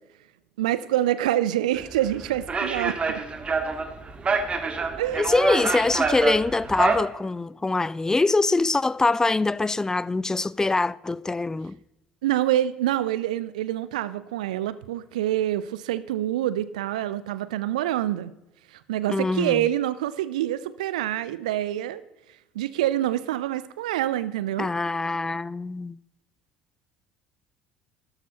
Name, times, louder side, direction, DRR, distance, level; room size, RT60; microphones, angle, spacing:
voice 1, 0.6-3.2 5.0-5.3 12.2-18.3 18.9-22.0 22.5-24.7, right 13 dB, 70° right, 0.5 m, -26 dB
sound 1, 1.8-7.0, right 4 dB, 25° right, 1.8 m, -27 dB
voice 2, 5.2-11.8 19.1-19.6 24.6-26.0, left 3 dB, 15° left, 0.4 m, -24 dB
13.5 x 13.0 x 2.9 m
figure-of-eight pair, 60°, 4 cm